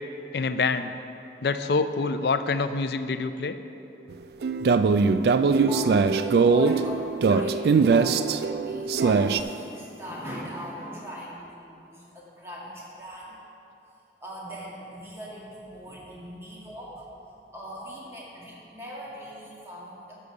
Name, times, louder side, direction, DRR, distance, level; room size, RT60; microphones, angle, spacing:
voice 1, 0.3-0.9 1.4-3.6 7.3-7.5, left 4 dB, 60° left, 10 dB, 0.4 m, -26 dB
sound 1, 4.4-9.4, right 4 dB, 60° right, 0.3 m, -21 dB
voice 2, 5.7-7.6 7.9-13.4 14.2-17.1 17.5-20.2, equal, 15° right, -5 dB, 1.9 m, -40 dB
12.0 x 6.8 x 4.9 m, 2.7 s
head